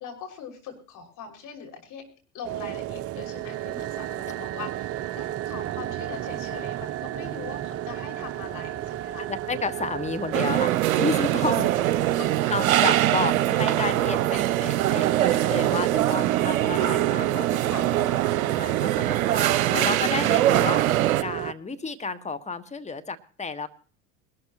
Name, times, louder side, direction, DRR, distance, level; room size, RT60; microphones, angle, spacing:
voice 1, 0.0-2.1 2.3-9.2 11.5-12.5 15.2-15.6 16.2-16.5 17.7-17.9 18.9-19.2, left 6 dB, 45° left, 2 dB, 5.9 m, -42 dB
sound 1, 2.4-21.5, right 13 dB, 35° right, 0.6 m, -33 dB
voice 2, 9.2-11.7 12.5-18.0 18.3-20.8 21.2-23.7, left 4 dB, 15° left, 11 dB, 1.5 m, -31 dB
sound 2, 10.3-21.2, right 14 dB, 80° right, 0.7 m, -23 dB
21.5 x 13.0 x 3.0 m, 0.40 s
hypercardioid pair, 80°, 42 cm